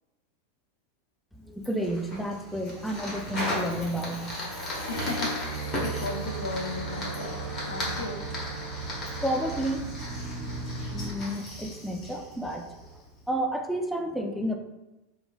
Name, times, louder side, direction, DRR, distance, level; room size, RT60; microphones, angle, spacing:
voice 1, 1.4-4.3 9.2-9.9 10.9-12.7 13.3-14.6, right 1 dB, ahead, 3 dB, 0.3 m, -31 dB
Fire, 1.6-13.0, left 1 dB, 30° left, 1.0 m, -37 dB
sound 1, 1.7-13.3, right 3 dB, 40° right, 1.0 m, -40 dB
sound 2, 3.3-4.7 4.9-11.1, right 2 dB, 55° right, 0.6 m, -39 dB
voice 2, 4.9-7.3 7.7-8.2, left 2 dB, 85° left, 3 dB, 0.3 m, -35 dB
3.1 x 2.2 x 2.3 m, 1.0 s
hypercardioid pair, 100°, 0 cm